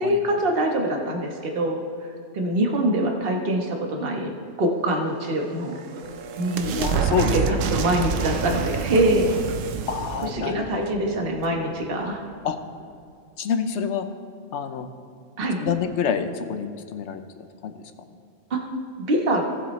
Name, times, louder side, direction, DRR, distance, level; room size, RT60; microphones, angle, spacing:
voice 1, 0.0-4.3 4.6-5.8 6.4-6.8 7.3-9.4 10.2-12.2 15.4-15.6 18.5-18.7 19.0-19.4, right 1 dB, 45° right, 1 dB, 1.4 m, -24 dB
sound 1, 5.4-11.9, right 6 dB, 75° right, 1.0 m, -28 dB
voice 2, 6.6-7.6 9.9-10.7 12.4-12.6 13.4-14.0 14.5-14.9 15.6-17.2 17.6-17.7, left 7 dB, 65° left, 8 dB, 1.0 m, -27 dB
18.0 x 7.6 x 3.2 m, 2.4 s
omnidirectional pair, 1.3 m